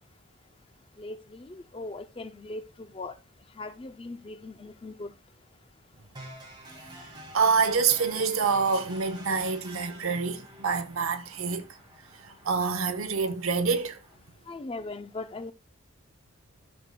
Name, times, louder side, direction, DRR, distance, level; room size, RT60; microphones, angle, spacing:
voice 1, 1.0-3.1 3.6-5.1 14.5-15.5, left 2 dB, 25° left, 0.4 m, -39 dB
sound 1, 6.2-14.2, right 1 dB, 20° right, 1.9 m, -48 dB
voice 2, 7.3-11.7 12.2-14.0, right 5 dB, 75° right, 0.8 m, -26 dB
13.0 x 6.5 x 2.2 m
head